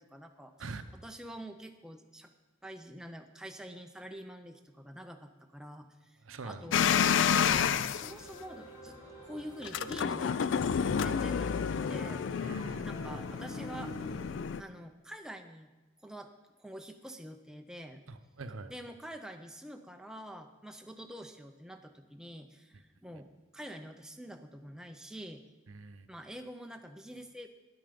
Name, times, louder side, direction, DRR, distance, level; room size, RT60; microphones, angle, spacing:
voice 1, 0.0-2.3 2.6-9.0 9.2-12.2 12.8-13.9 14.6-15.7 16.0-16.3 16.6-18.0 18.7-25.4 26.1-27.5, equal, 5° right, 5 dB, 0.5 m, -47 dB
voice 2, 6.3-6.7 12.4-12.8 18.1-18.7 25.7-26.1, right 3 dB, 85° right, 11 dB, 0.7 m, -44 dB
sound 1, 6.7-8.1 9.6-14.6, left 7 dB, 70° left, 0.4 m, -30 dB
sound 2, 8.0-14.2, equal, 35° left, 4.4 m, -48 dB
9.7 x 9.2 x 5.1 m, 1.2 s
head